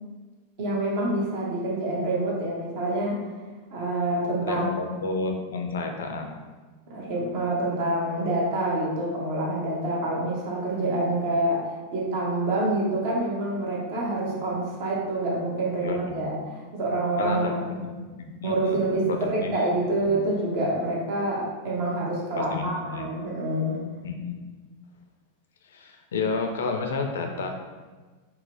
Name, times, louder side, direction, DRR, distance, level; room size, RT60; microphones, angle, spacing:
voice 1, 0.6-3.2 3.7-4.9 6.9-17.8 18.4-23.8, right 1 dB, 50° right, -3 dB, 0.8 m, -27 dB
voice 2, 4.4-6.3 15.8-16.4 17.2-17.8 18.1-19.5 19.8-20.1 22.4-23.1 24.0-24.4 25.6-27.6, left 4 dB, 65° left, 4 dB, 0.4 m, -31 dB
4.1 x 2.1 x 2.6 m, 1.3 s
figure-of-eight pair, 90°, 0 cm